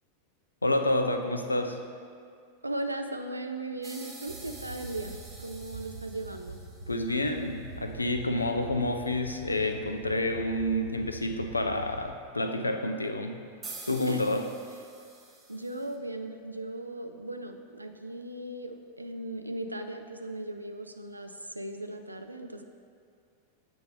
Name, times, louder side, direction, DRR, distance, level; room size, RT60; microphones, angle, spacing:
voice 1, 0.6-1.8 6.9-13.4 13.9-14.4, left 1 dB, 80° left, 6 dB, 0.4 m, -29 dB
voice 2, 2.6-6.6 14.1-14.4 15.5-22.6, right 1 dB, 85° right, 6 dB, 0.4 m, -37 dB
sound 1, 3.8-7.3 13.6-15.9, right 3 dB, 15° right, 0.9 m, -47 dB
sound 2, 4.3-12.1, right 3 dB, 55° right, 1.0 m, -44 dB
7.8 x 2.9 x 5.1 m, 2.3 s
figure-of-eight pair, 90°, 0 cm